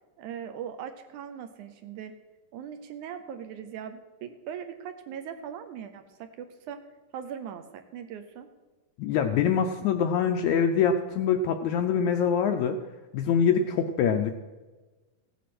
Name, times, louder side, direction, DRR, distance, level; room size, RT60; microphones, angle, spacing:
voice 1, 0.2-2.2 2.5-6.8 7.1-8.5, right 8 dB, 75° right, 9 dB, 2.0 m, -40 dB
voice 2, 9.0-12.8 13.1-14.3, left 7 dB, 80° left, 6 dB, 1.7 m, -24 dB
15.5 x 8.3 x 6.0 m, 1.2 s
omnidirectional pair, 3.9 m